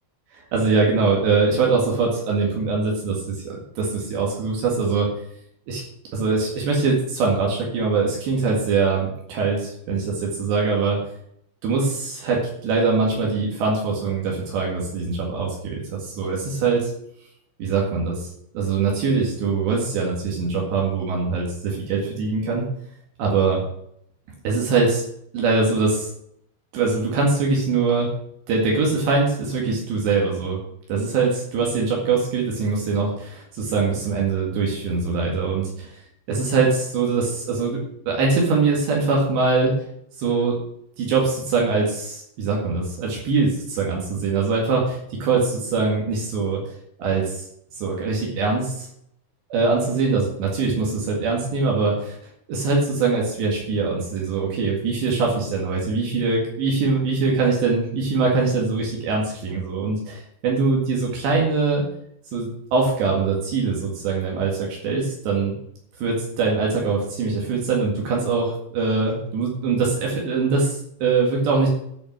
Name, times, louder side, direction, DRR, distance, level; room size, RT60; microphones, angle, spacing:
voice 1, 0.3-5.1 5.7-5.8 6.1-11.0 11.6-16.9 17.6-18.3 18.5-22.7 23.2-23.6 24.4-25.0 25.3-26.1 26.7-28.1 28.5-30.6 30.9-36.0 36.3-37.8 38.1-39.7 40.2-40.6 41.0-46.6 47.0-47.5 47.8-48.9 49.5-52.2 52.5-61.8 62.3-65.5 66.0-71.7, right 4 dB, 70° right, -2 dB, 4.1 m, -22 dB
12.5 x 5.5 x 6.1 m, 0.71 s
omnidirectional pair, 5.3 m